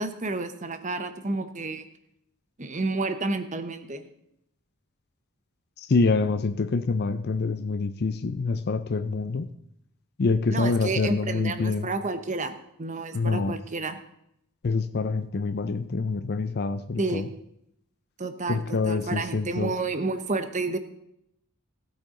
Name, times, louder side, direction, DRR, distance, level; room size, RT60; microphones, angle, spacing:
voice 1, 0.0-1.9 2.6-4.0 10.5-14.0 17.0-17.3 18.2-20.8, right 3 dB, 35° right, 9 dB, 0.9 m, -30 dB
voice 2, 5.8-9.5 10.2-11.9 13.1-13.6 14.6-17.3 18.5-19.7, left 4 dB, 45° left, 11 dB, 0.5 m, -26 dB
16.5 x 8.4 x 3.8 m, 0.77 s
head